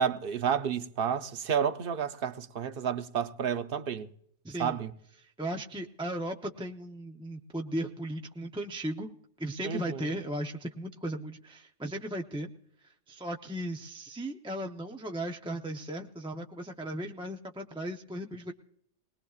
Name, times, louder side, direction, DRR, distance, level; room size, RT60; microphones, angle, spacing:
voice 1, 0.0-4.1 4.6-4.9 9.6-10.1, right 7 dB, 55° right, 0.8 m, -30 dB
voice 2, 4.4-4.8 5.2-12.5 13.1-18.5, right 1 dB, 5° right, 0.5 m, -36 dB
20.5 x 20.0 x 2.4 m
omnidirectional pair, 1.2 m